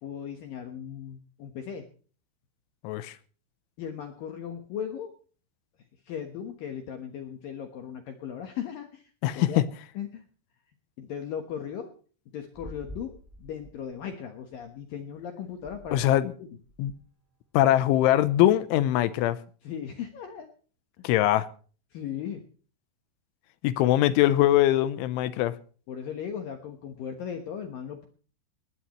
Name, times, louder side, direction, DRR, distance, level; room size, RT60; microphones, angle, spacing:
voice 1, 0.0-1.8 3.8-5.1 6.1-9.6 9.9-10.2 11.0-11.9 12.3-16.1 16.4-16.5 19.6-20.5 21.0-21.1 21.9-22.4 25.9-28.1, left 8 dB, 65° left, 2.4 m, -37 dB
voice 2, 9.2-9.6 15.9-16.3 16.8-16.9 17.5-19.4 21.0-21.5 23.6-25.5, left 13 dB, 80° left, 3.2 m, -22 dB
sound 1, 12.5-14.7 15.5-16.2 16.6-17.1 17.6-18.3, equal, 5° right, 5.1 m, -48 dB
20.0 x 17.0 x 3.1 m
omnidirectional pair, 5.5 m